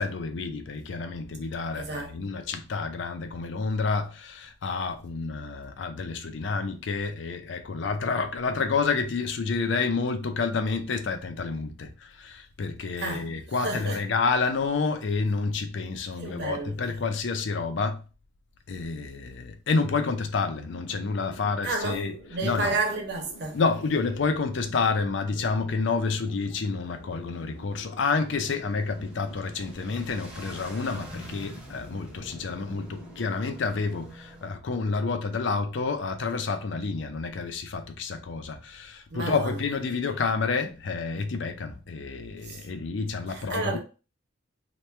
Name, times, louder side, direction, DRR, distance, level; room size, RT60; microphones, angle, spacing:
voice 1, 0.0-18.0 18.7-22.1 22.4-22.7 23.5-43.8, left 4 dB, 65° left, 0.5 m, -29 dB
voice 2, 1.8-2.1 13.0-13.3 13.6-14.0 16.2-16.7 21.6-23.6 39.1-39.6 42.4-42.6 43.3-43.8, right 3 dB, 55° right, 0.8 m, -31 dB
sound 1, 20.7-33.7, left 1 dB, 85° left, 0.8 m, -49 dB
sound 2, 26.7-34.5, right 1 dB, 5° right, 0.6 m, -47 dB
2.9 x 2.2 x 3.2 m
head